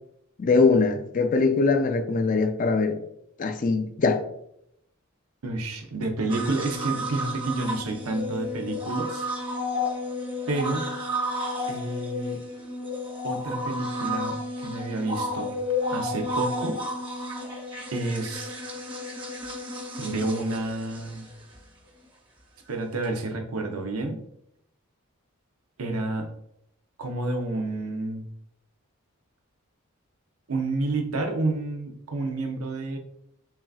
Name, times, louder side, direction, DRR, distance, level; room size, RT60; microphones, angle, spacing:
voice 1, 0.4-3.0 3.4-4.2, left 4 dB, 35° left, 7 dB, 0.3 m, -22 dB
voice 2, 5.4-9.2 10.5-10.8 11.7-12.4 13.2-15.5 15.9-16.8 17.9-18.6 20.0-21.3 22.7-24.2 25.8-26.3 27.0-28.3 30.5-33.0, right 2 dB, 85° right, 4 dB, 0.7 m, -29 dB
sound 1, 6.3-21.6 23.0-23.1, left 1 dB, 25° right, 0.7 m, -32 dB
5.7 x 2.5 x 2.4 m, 0.76 s
head